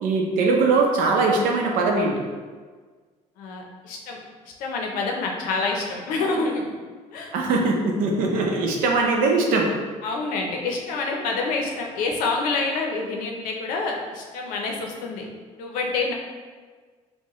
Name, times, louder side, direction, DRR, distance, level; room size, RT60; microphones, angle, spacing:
voice 1, 0.0-2.3 7.3-9.7, right 3 dB, 80° right, 0 dB, 0.7 m, -21 dB
voice 2, 3.4-4.2 4.6-6.7 7.1-7.3 10.0-15.3 15.6-16.1, left 3 dB, 90° left, 1 dB, 0.7 m, -27 dB
4.6 x 2.2 x 3.0 m, 1.5 s
cardioid pair, 125°, 14 cm